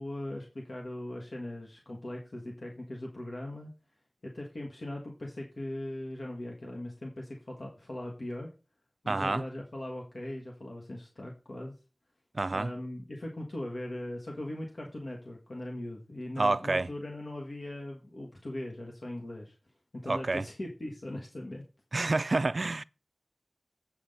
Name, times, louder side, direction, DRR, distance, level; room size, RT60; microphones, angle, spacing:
voice 1, 0.0-3.7 4.2-8.5 9.0-11.7 12.5-19.5 20.0-21.6, left 1 dB, 80° left, 1.6 m, -39 dB
voice 2, 9.1-9.4 12.3-12.7 16.4-16.9 20.1-20.4 21.9-22.8, right 3 dB, 75° right, 0.3 m, -28 dB
8.4 x 6.1 x 5.4 m
wide cardioid pair, 45°, 0 cm